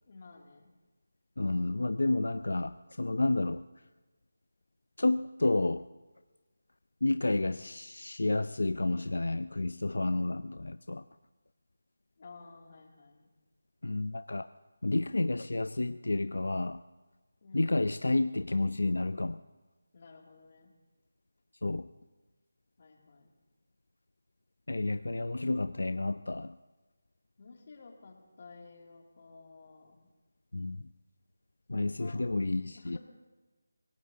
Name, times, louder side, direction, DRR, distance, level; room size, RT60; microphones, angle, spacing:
voice 1, 0.1-0.7 12.2-13.3 17.4-17.8 19.9-20.7 22.8-23.3 27.4-30.0 31.7-32.4 32.7-33.0, left 4 dB, 40° left, 1 dB, 2.5 m, -53 dB
voice 2, 1.4-3.6 5.0-5.9 7.0-11.0 13.8-14.5 14.8-16.8 17.5-19.4 21.6-21.9 24.7-26.6 30.5-30.9 31.7-33.0, left 2 dB, 80° left, 12 dB, 0.4 m, -30 dB
26.0 x 17.5 x 2.8 m, 1.2 s
figure-of-eight pair, 170°, 0 cm